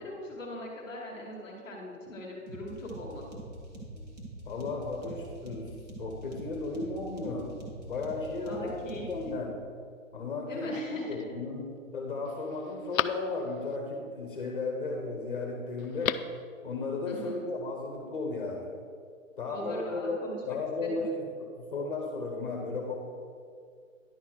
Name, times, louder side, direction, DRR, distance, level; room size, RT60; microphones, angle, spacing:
voice 1, 0.0-3.3 8.4-9.3 10.5-11.3 17.0-17.4 19.5-20.4 20.8-21.0, left 1 dB, 5° left, -14 dB, 1.3 m, -40 dB
sound 1, 2.5-9.3, right 1 dB, 30° right, 1.2 m, -45 dB
voice 2, 4.4-5.7 6.0-7.5 7.9-8.8 9.1-9.6 10.1-16.2 16.6-18.7 19.4-20.2 20.4-23.0, left 3 dB, 40° left, 1 dB, 1.0 m, -35 dB
Telephone, 10.6-11.2 11.8-11.9 12.2-13.8 15.8-16.4 16.7-16.8, left 10 dB, 80° left, 0.5 m, -35 dB
10.5 x 4.2 x 6.1 m, 2.2 s
hypercardioid pair, 180°, 41 cm